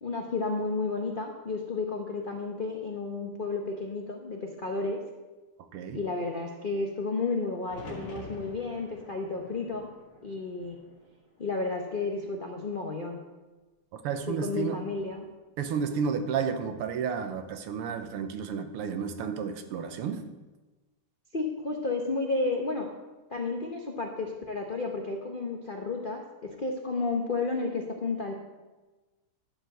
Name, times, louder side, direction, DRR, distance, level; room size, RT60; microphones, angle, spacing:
voice 1, 0.0-5.0 5.9-9.9 10.2-10.8 11.4-13.2 14.3-15.3 21.3-22.9 23.3-28.3, left 3 dB, 85° left, 2 dB, 0.4 m, -32 dB
sound 1, 7.7-11.7 12.1-12.8 14.7-15.2, equal, 45° left, 2.7 m, -47 dB
voice 2, 13.9-14.8 15.6-20.2, right 6 dB, 85° right, 8 dB, 1.8 m, -32 dB
12.0 x 4.9 x 7.7 m, 1.2 s
omnidirectional pair, 2.4 m